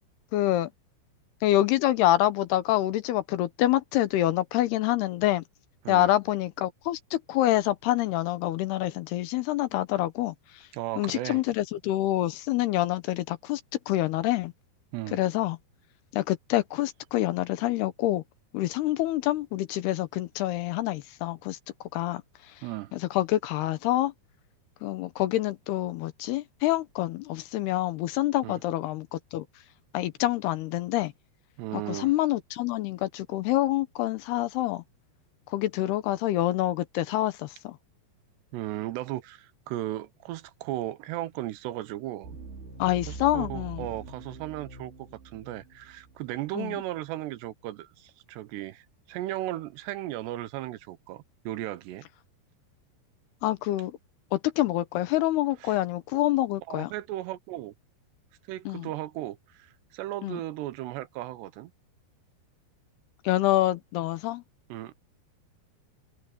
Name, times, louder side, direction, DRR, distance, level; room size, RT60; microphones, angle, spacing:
voice 1, 0.3-0.7 1.4-5.4 5.9-10.7 11.0-13.6 13.9-14.5 15.1-15.6 16.1-18.2 18.5-22.2 22.5-22.6 22.9-24.1 24.8-29.5 29.9-31.1 31.7-34.8 35.5-37.8 42.8-43.9 46.5-46.8 53.4-54.0 54.3-56.9 58.7-58.9 60.2-60.4 63.2-64.4, left 15 dB, 75° left, 2.7 m, -27 dB
voice 2, 10.7-11.4 14.9-15.2 22.6-22.9 28.4-28.6 31.6-32.1 38.5-42.4 43.1-52.1 55.6-55.7 56.7-57.7 58.5-61.7 64.7-64.9, right 15 dB, 80° right, 2.9 m, -36 dB
sound 1, 42.2-46.6 46.9-47.1, right 3 dB, 60° right, 6.9 m, -43 dB
open air
omnidirectional pair, 5.1 m